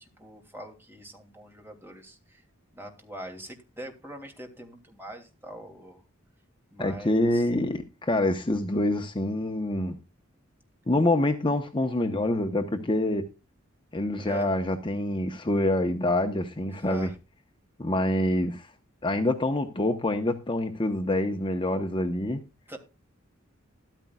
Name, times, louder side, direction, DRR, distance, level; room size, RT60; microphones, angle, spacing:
voice 1, 0.0-2.4 2.7-6.0 6.7-7.5 14.2-14.5 16.8-17.2 22.7-22.8, right 1 dB, 10° right, 2.9 m, -43 dB
voice 2, 6.8-10.0 10.9-13.2 13.9-17.1 17.8-18.7 19.0-22.4, left 1 dB, 25° left, 1.1 m, -26 dB
13.5 x 13.0 x 2.4 m
head